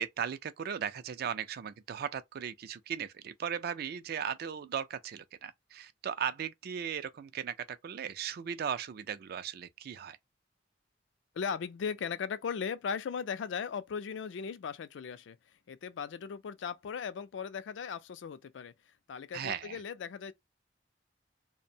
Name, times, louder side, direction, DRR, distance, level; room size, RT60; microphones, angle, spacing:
voice 1, 0.0-10.2 19.3-19.8, right 8 dB, 55° right, 0.3 m, -37 dB
voice 2, 11.3-15.4 15.7-18.7 19.1-20.3, left 6 dB, 85° left, 0.4 m, -37 dB
2.6 x 2.1 x 2.7 m
head